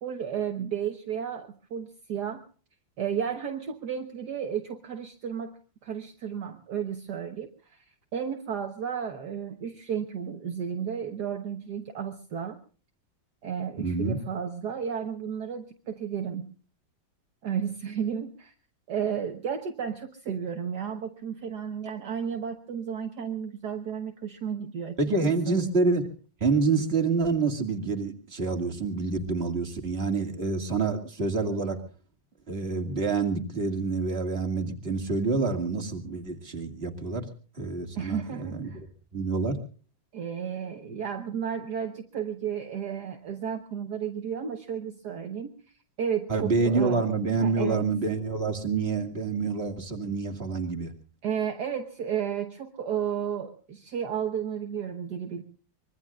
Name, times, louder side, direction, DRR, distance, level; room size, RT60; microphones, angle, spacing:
voice 1, 0.0-2.5 3.0-5.5 5.8-7.9 8.1-12.6 13.4-16.5 17.4-18.5 18.9-25.0 25.5-25.6 38.0-38.8 40.1-45.6 46.0-47.0 47.4-47.9 51.2-55.4, right 8 dB, 60° right, 5 dB, 1.7 m, -33 dB
voice 2, 13.8-14.2 25.0-26.1 26.4-31.8 32.5-37.3 37.6-38.7 39.1-39.6 46.3-50.9, right 4 dB, 30° right, 3 dB, 2.5 m, -27 dB
24.5 x 22.5 x 2.4 m, 0.38 s
omnidirectional pair, 2.1 m